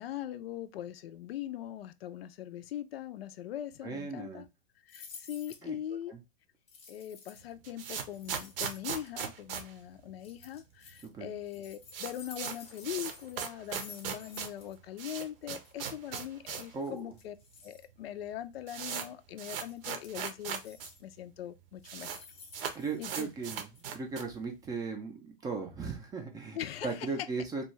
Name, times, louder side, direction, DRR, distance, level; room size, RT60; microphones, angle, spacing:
voice 1, 0.0-4.5 4.9-6.2 6.9-17.4 17.6-22.1 22.6-23.3 26.5-27.1, left 11 dB, 85° left, 0.5 m, -41 dB
voice 2, 3.8-4.4 5.6-5.8 6.1-6.2 11.0-11.3 16.7-17.1 22.7-26.6 26.8-27.7, right 4 dB, 15° right, 0.4 m, -37 dB
sound 1, 4.9-5.7 6.7-7.5 8.1-9.1 10.2-11.1 11.4-14.8 15.0-15.1 15.4-15.7 16.8-17.9 18.9-19.1 19.4-20.2 20.5-21.1 21.8-23.5 23.7-23.8, left 5 dB, 20° left, 0.7 m, -53 dB
sound 2, 7.4-10.6 10.9-11.0 11.2-11.3 11.6-16.8 17.1-17.2 17.9-18.0 18.2-20.9 21.2-21.3 21.5-22.2 22.5-24.4, right 7 dB, 70° right, 0.6 m, -39 dB
2.6 x 2.3 x 3.0 m
hypercardioid pair, 135°, 29 cm